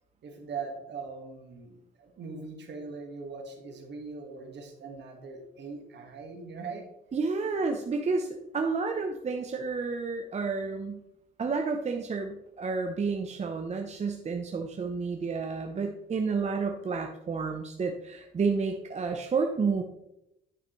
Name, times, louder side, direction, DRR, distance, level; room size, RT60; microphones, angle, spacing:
voice 1, 0.2-6.8, right 4 dB, 60° right, 3 dB, 1.7 m, -41 dB
voice 2, 7.1-11.0 11.4-19.8, right 4 dB, 35° right, 4 dB, 0.7 m, -30 dB
9.4 x 5.9 x 3.1 m, 0.85 s
cardioid pair, 90°, 20 cm